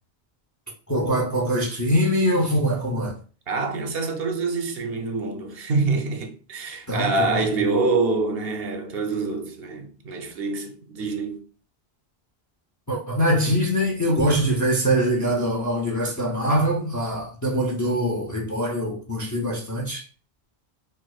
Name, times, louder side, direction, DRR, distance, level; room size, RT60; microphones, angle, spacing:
voice 1, 0.9-3.2 6.9-7.5 12.9-20.1, equal, 25° left, 0.4 m, -23 dB
voice 2, 3.5-11.4, right 3 dB, 70° right, 0.8 m, -26 dB
Bowed string instrument, 14.2-15.1, right 5 dB, 65° left, 1.3 m, -33 dB
4.5 x 2.0 x 2.3 m
omnidirectional pair, 1.1 m